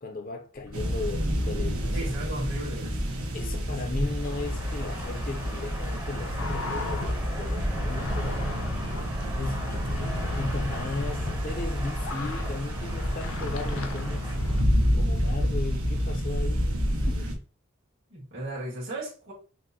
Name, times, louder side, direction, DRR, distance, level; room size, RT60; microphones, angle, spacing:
voice 1, 0.0-2.2 3.3-8.4 9.4-14.4 14.9-17.4, left 3 dB, 40° left, 0.5 m, -36 dB
sound 1, 0.5-17.1, right 1 dB, 15° right, 0.7 m, -42 dB
sound 2, 0.7-17.4, equal, 85° right, 1.1 m, -29 dB
voice 2, 1.9-3.0 3.4-4.0 18.1-19.3, right 1 dB, 65° right, 1.9 m, -36 dB
sound 3, 4.2-14.6, left 3 dB, 75° left, 0.7 m, -39 dB
6.1 x 2.5 x 2.7 m
head